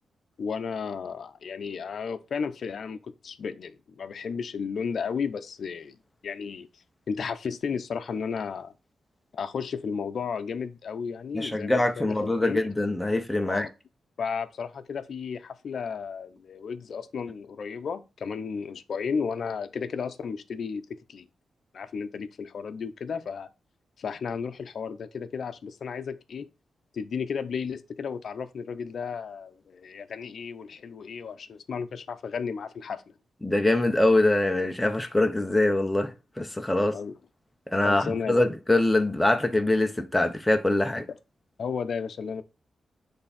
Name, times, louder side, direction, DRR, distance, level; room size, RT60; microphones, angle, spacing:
voice 1, 0.4-6.0 6.2-6.7 7.1-8.7 9.3-12.6 13.5-13.7 14.2-21.3 21.7-23.5 24.0-26.5 26.9-33.0 36.9-37.1 37.8-38.4 41.6-42.4, left 6 dB, 55° left, 0.7 m, -33 dB
voice 2, 11.3-13.7 33.4-36.1 36.4-37.0 37.7-41.1, left 2 dB, 5° left, 0.8 m, -24 dB
7.6 x 3.5 x 4.2 m
wide cardioid pair, 165°, 0 cm